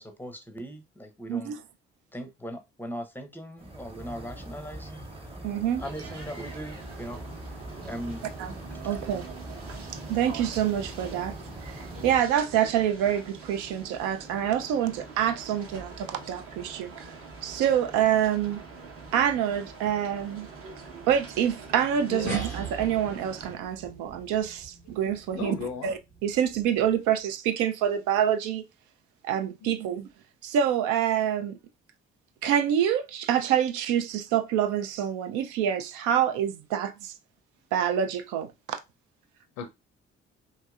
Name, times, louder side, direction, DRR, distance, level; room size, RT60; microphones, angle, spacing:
voice 1, 0.0-1.5 2.1-5.0 5.8-7.5 7.8-8.2, equal, 5° left, 0.6 m, -39 dB
sound 1, 3.6-12.2, right 1 dB, 15° right, 1.0 m, -42 dB
voice 2, 5.4-5.8 8.4-8.6 8.8-9.2 10.1-11.3 11.6-17.1 17.4-18.6 19.1-20.5 21.1-25.5 25.8-28.6 29.2-30.1 30.4-31.6 32.4-37.1 37.7-38.5, right 9 dB, 60° right, 0.5 m, -26 dB
sound 2, 5.8-23.5, right 4 dB, 40° right, 1.0 m, -45 dB
voice 3, 22.1-22.4 25.3-25.9 29.8-29.9 39.6-39.7, left 6 dB, 55° left, 0.5 m, -35 dB
sound 3, 22.3-27.1, right 3 dB, 85° right, 1.3 m, -42 dB
2.8 x 2.8 x 2.3 m
figure-of-eight pair, 40°, 34 cm